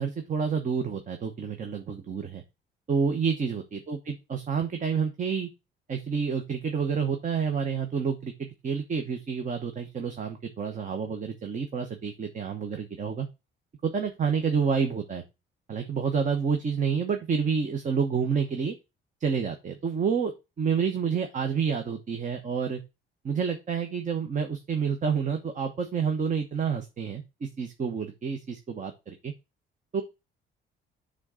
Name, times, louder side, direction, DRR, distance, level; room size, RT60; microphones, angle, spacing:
voice 1, 0.0-2.4 2.9-5.5 5.9-13.3 13.8-15.2 15.7-18.7 19.2-22.8 23.2-29.3 29.9-30.0, right 6 dB, 40° right, 6 dB, 1.1 m, -29 dB
6.3 x 3.9 x 6.3 m, 0.25 s
cardioid pair, 120°, 20 cm